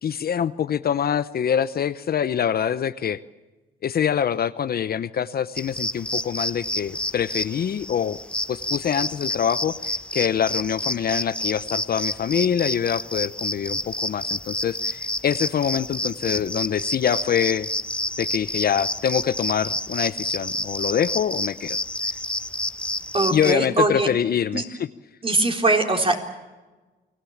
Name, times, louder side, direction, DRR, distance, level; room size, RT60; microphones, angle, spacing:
voice 1, 0.0-3.2 3.8-8.2 8.5-17.7 18.2-21.8 23.3-24.6, left 8 dB, 50° left, 13 dB, 0.8 m, -25 dB
sound 1, 5.5-23.5, left 1 dB, 5° left, 0.8 m, -29 dB
voice 2, 23.1-24.1 24.5-24.6 25.2-26.2, right 2 dB, 25° right, 3 dB, 3.7 m, -21 dB
29.5 x 20.0 x 7.3 m, 1.2 s
cardioid pair, 90°, 20 cm